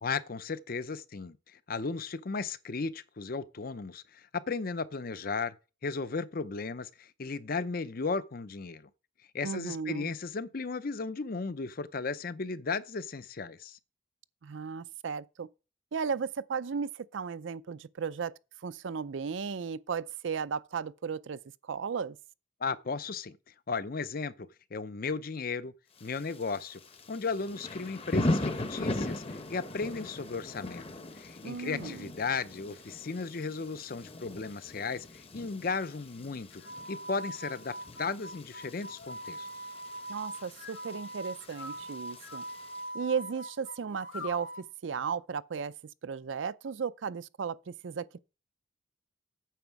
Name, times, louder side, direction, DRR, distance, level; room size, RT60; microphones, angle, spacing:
voice 1, 0.0-5.5 5.8-8.9 9.3-13.8 22.6-23.4 23.7-25.7 26.0-26.8 27.1-29.2 29.5-30.9 31.2-36.6 36.9-39.5, left 4 dB, 45° left, 0.6 m, -35 dB
voice 2, 9.4-10.1 14.4-15.5 15.9-18.3 18.6-22.2 31.4-32.1 40.1-42.4 42.9-45.7 46.0-48.2, right 6 dB, 70° right, 0.5 m, -35 dB
Thunder / Rain, 26.0-42.8, left 1 dB, 30° left, 0.9 m, -39 dB
sound 1, 36.5-44.7, equal, 75° left, 1.3 m, -42 dB
9.1 x 7.0 x 4.6 m
head